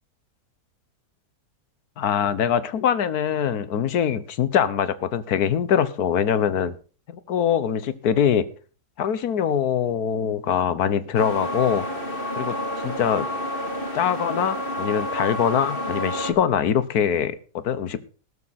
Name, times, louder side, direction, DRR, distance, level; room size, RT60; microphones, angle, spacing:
voice 1, 2.0-6.7 7.3-8.5 9.0-11.9 12.3-12.6 12.8-13.3 13.9-18.0, left 8 dB, 65° left, 15 dB, 1.5 m, -23 dB
sound 1, 11.1-16.3, left 1 dB, 30° left, 2.9 m, -29 dB
14.5 x 13.0 x 4.1 m, 0.37 s
omnidirectional pair, 1.8 m